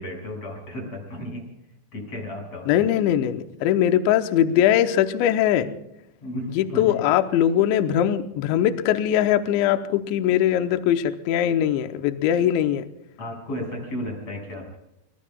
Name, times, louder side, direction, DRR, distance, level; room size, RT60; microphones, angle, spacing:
voice 1, 0.0-1.4 1.9-2.9 6.2-7.0 13.2-14.8, left 1 dB, 35° left, 1 dB, 7.3 m, -33 dB
voice 2, 2.7-5.7 6.6-12.8, left 10 dB, 80° left, 8 dB, 3.0 m, -21 dB
24.0 x 22.5 x 2.4 m, 0.84 s
omnidirectional pair, 5.6 m